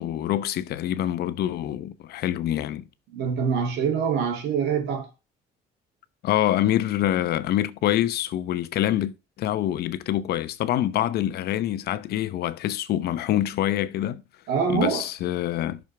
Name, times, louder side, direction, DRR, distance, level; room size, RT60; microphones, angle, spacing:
voice 1, 0.0-2.8 6.2-14.2 14.7-15.8, left 12 dB, 70° left, 0.9 m, -26 dB
voice 2, 3.1-5.1 14.5-15.1, right 6 dB, 80° right, 2.6 m, -25 dB
10.5 x 6.5 x 3.4 m
cardioid pair, 110°, 17 cm